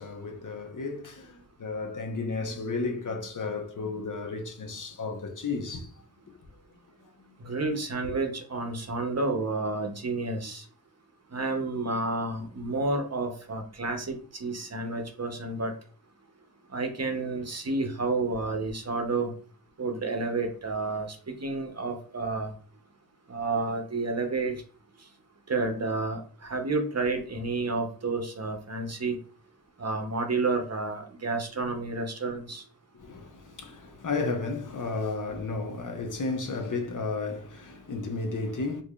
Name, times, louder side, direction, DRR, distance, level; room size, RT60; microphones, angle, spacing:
voice 1, 0.0-5.9 8.0-8.1 32.9-38.8, left 3 dB, 55° left, 0.8 m, -33 dB
voice 2, 7.4-10.6 11.3-15.7 16.7-19.3 19.8-22.5 23.3-24.6 25.5-29.2 29.8-32.6, right 3 dB, 40° right, 0.7 m, -30 dB
4.6 x 2.6 x 2.3 m
wide cardioid pair, 65°, 39 cm